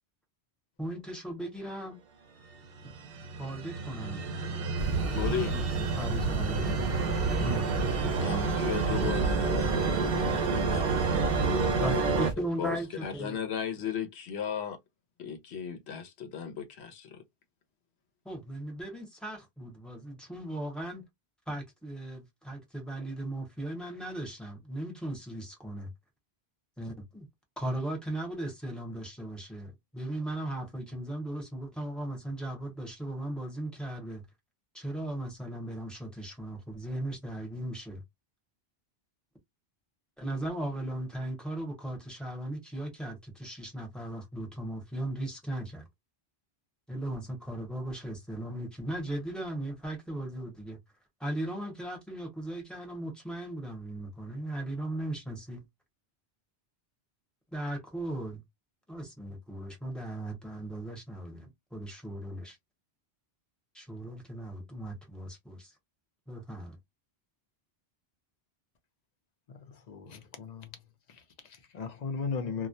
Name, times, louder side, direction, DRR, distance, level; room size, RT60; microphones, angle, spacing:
voice 1, 0.8-2.0 3.4-4.2 5.5-5.6 6.0-6.9 7.4-7.7 11.8-13.4 18.2-21.0 21.5-25.9 26.8-27.3 27.6-34.2 34.7-38.0 40.2-45.8 46.9-50.8 51.2-55.6 57.5-58.4 58.9-62.6 63.7-65.7 66.3-66.8, right 1 dB, ahead, 0.8 m, -37 dB
sound 1, 2.6-12.3, right 5 dB, 65° right, 0.7 m, -30 dB
sound 2, 4.8-12.3, right 2 dB, 35° right, 0.7 m, -33 dB
voice 2, 5.1-5.5 8.2-10.9 11.3-12.3 12.6-14.8 15.2-17.2, left 8 dB, 85° left, 0.9 m, -35 dB
voice 3, 69.5-70.7 71.1-72.7, left 5 dB, 55° left, 0.5 m, -37 dB
2.3 x 2.1 x 2.6 m
omnidirectional pair, 1.1 m